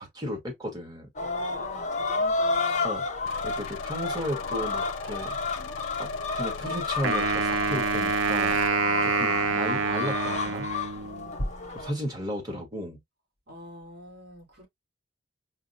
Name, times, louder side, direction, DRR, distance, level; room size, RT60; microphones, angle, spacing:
voice 1, 0.0-1.1 2.8-3.0 3.4-5.3 6.0-8.6 9.0-10.7 11.7-13.0, equal, 20° right, 1.6 m, -34 dB
sound 1, 1.2-11.9, left 3 dB, 40° left, 0.8 m, -31 dB
voice 2, 1.2-2.9 11.0-11.8 13.5-14.7, left 1 dB, 60° right, 3.0 m, -45 dB
sound 2, 3.3-8.7, left 6 dB, 75° left, 0.4 m, -40 dB
Wind instrument woodwind instrument, 7.0-11.3, right 4 dB, 85° right, 0.6 m, -26 dB
4.9 x 2.3 x 2.6 m
head